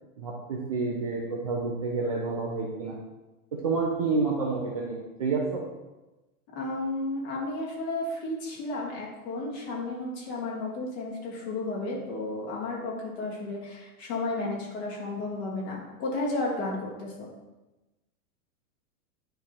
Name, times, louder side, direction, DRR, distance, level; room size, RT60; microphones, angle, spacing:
voice 1, 0.2-3.0 3.5-5.6, right 4 dB, 25° right, -3 dB, 0.4 m, -29 dB
voice 2, 6.6-17.3, left 2 dB, 45° left, -4 dB, 2.5 m, -33 dB
9.5 x 3.3 x 4.3 m, 1.1 s
supercardioid pair, 170°, 44 cm